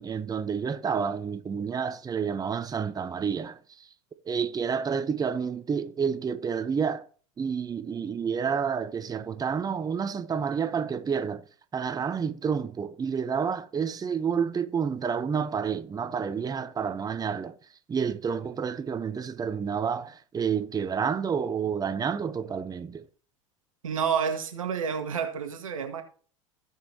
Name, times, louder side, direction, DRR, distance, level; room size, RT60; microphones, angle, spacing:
voice 1, 0.0-3.9 4.3-7.0 7.4-11.4 11.7-17.6 17.9-23.0, right 6 dB, 20° right, 0.9 m, -29 dB
voice 2, 23.8-26.0, right 7 dB, 85° right, 1.7 m, -29 dB
16.5 x 5.7 x 2.9 m
hypercardioid pair, 85°, 17 cm